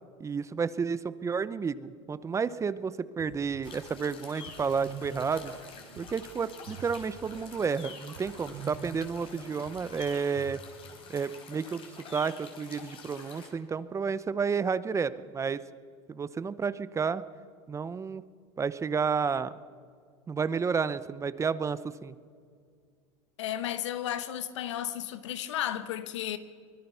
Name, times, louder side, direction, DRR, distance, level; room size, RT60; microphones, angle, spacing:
voice 1, 0.2-5.5 6.0-10.6 11.1-11.8 12.1-15.6 16.1-17.2 17.7-18.2 18.6-19.5 20.3-22.1, right 5 dB, 20° right, 0.8 m, -31 dB
sound 1, 3.2-10.8, right 5 dB, 85° right, 4.8 m, -47 dB
sound 2, 3.6-13.5, left 5 dB, 35° left, 4.3 m, -48 dB
voice 2, 23.4-26.4, left 11 dB, 85° left, 1.3 m, -33 dB
24.5 x 21.0 x 5.7 m
supercardioid pair, 110°, 15 cm